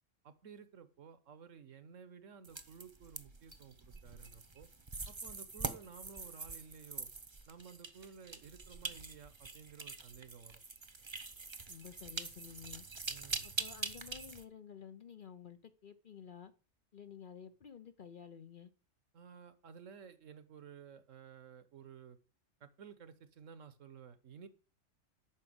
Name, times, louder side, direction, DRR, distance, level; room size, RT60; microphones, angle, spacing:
voice 1, 0.2-4.7 5.1-7.1 7.5-10.6 13.1-13.5 19.1-22.2 22.6-24.5, right 6 dB, 70° right, 1.4 m, -54 dB
sound 1, 2.4-14.4, right 4 dB, 25° right, 0.8 m, -44 dB
voice 2, 11.7-12.8 13.4-16.5 16.9-18.7, left 8 dB, 50° left, 0.8 m, -52 dB
9.0 x 6.0 x 7.8 m
omnidirectional pair, 1.4 m